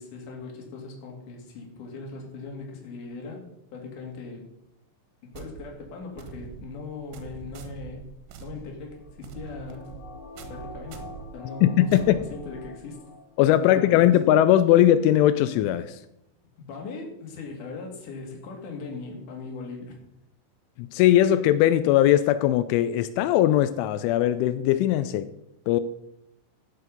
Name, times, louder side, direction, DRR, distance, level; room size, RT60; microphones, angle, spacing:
voice 1, 0.0-3.4 3.7-4.4 5.2-8.1 8.4-10.0 10.5-11.9 12.1-13.1 13.6-14.2 16.6-20.1, left 3 dB, 50° left, 3.3 m, -39 dB
sound 1, 5.3-13.0, right 7 dB, 85° right, 3.6 m, -44 dB
sound 2, 8.9-13.7 14.0-14.1, left 3 dB, 65° left, 3.6 m, -46 dB
voice 2, 11.6-12.2 13.4-16.0 20.8-25.3 25.7-25.8, left 12 dB, 85° left, 3.0 m, -20 dB
15.0 x 6.8 x 5.2 m
omnidirectional pair, 5.4 m